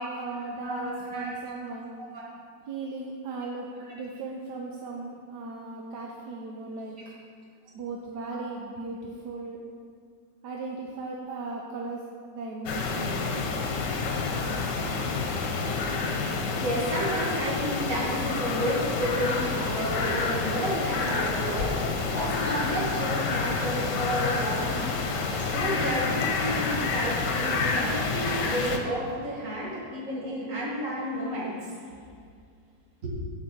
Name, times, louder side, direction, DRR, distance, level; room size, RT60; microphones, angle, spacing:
voice 1, 0.0-1.9 2.7-7.0 7.7-9.6 10.4-13.2, right 3 dB, 75° right, -1 dB, 1.3 m, -37 dB
voice 2, 0.6-1.3 2.1-2.3 7.0-7.1 8.3-8.4 16.5-24.9 25.3-31.8 33.0-33.1, equal, 50° right, -5 dB, 2.2 m, -31 dB
sound 1, 12.7-28.8, left 4 dB, 85° left, 1.5 m, -28 dB
8.7 x 5.4 x 6.1 m, 2.2 s
omnidirectional pair, 1.8 m